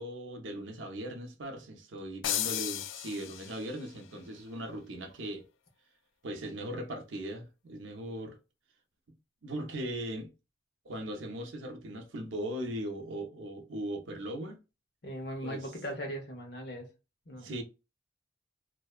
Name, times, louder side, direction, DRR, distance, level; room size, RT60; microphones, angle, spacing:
voice 1, 0.0-5.5 6.2-8.4 9.4-10.3 10.8-14.6 15.4-15.7 17.4-17.6, right 1 dB, 90° right, 0.6 m, -39 dB
sound 1, 2.2-3.9, left 12 dB, 85° left, 0.3 m, -34 dB
voice 2, 15.0-16.9 17.3-17.6, equal, 55° left, 0.8 m, -39 dB
2.6 x 2.1 x 2.3 m
head